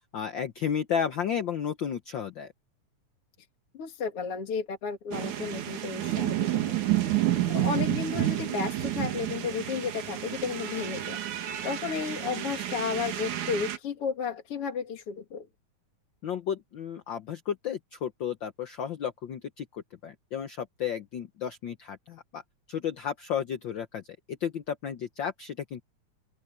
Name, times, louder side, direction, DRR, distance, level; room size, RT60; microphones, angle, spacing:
voice 1, 0.1-2.5 16.2-22.4 22.7-24.0 24.3-25.8, left 8 dB, 90° left, 1.0 m, -33 dB
voice 2, 3.7-6.8 7.1-15.5, left 5 dB, 50° left, 2.9 m, -33 dB
sound 1, 5.1-13.8, right 13 dB, 75° right, 3.1 m, -30 dB
open air
omnidirectional pair, 3.4 m